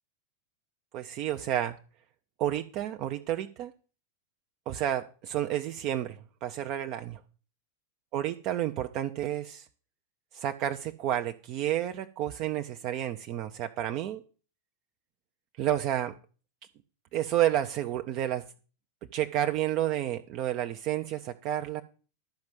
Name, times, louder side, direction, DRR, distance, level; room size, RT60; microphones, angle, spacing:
voice 1, 0.9-1.8 2.4-3.7 4.7-7.2 8.1-9.7 10.3-14.2 15.6-16.1 17.1-18.4 19.1-21.8, right 12 dB, 40° right, 6 dB, 0.7 m, -30 dB
11.5 x 5.2 x 7.6 m, 0.38 s
figure-of-eight pair, 90°, 0 cm